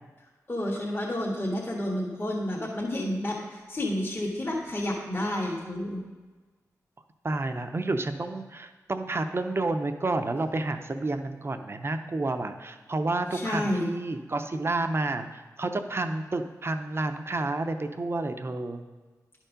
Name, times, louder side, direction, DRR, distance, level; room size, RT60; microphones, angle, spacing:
voice 1, 0.5-6.0 13.3-13.9, left 1 dB, 35° left, -3 dB, 1.6 m, -30 dB
voice 2, 7.2-18.8, right 2 dB, 40° right, 7 dB, 0.7 m, -30 dB
10.5 x 4.6 x 5.1 m, 1.3 s
cardioid pair, 55°, 6 cm